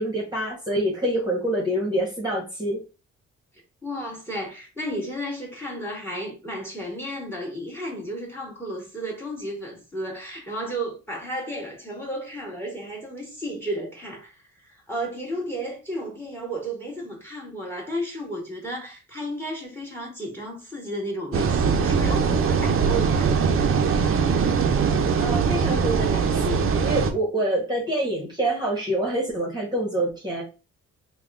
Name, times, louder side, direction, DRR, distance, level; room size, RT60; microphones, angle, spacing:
voice 1, 0.0-2.8 25.2-30.4, right 1 dB, 15° right, 1.4 m, -26 dB
voice 2, 3.8-23.7, right 1 dB, 5° left, 1.8 m, -33 dB
sound 1, 21.3-27.1, right 6 dB, 45° right, 0.6 m, -21 dB
3.4 x 2.3 x 3.6 m
cardioid pair, 90°, 30 cm